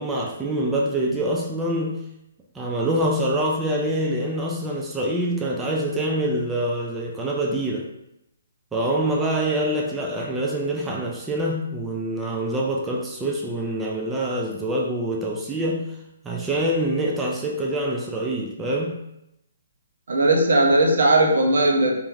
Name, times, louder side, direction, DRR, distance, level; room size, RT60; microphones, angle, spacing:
voice 1, 0.0-2.1 2.5-7.9 8.7-16.0 16.2-19.0, right 1 dB, 10° right, -2 dB, 0.4 m, -25 dB
voice 2, 20.1-21.9, right 2 dB, 70° right, 1 dB, 0.7 m, -18 dB
2.8 x 2.5 x 3.5 m, 0.83 s
figure-of-eight pair, 135°, 0 cm